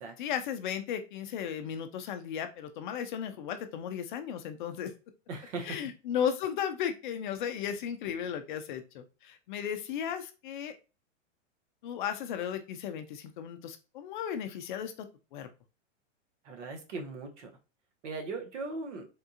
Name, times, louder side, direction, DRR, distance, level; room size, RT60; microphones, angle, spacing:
voice 1, 0.2-4.9 5.6-10.8 11.8-15.1 15.3-15.5, left 8 dB, 40° left, 8 dB, 0.4 m, -35 dB
voice 2, 5.3-5.8 16.4-17.5 18.0-19.1, right 3 dB, 65° right, 3 dB, 1.1 m, -38 dB
3.5 x 2.3 x 2.7 m, 0.31 s
hypercardioid pair, 140°, 38 cm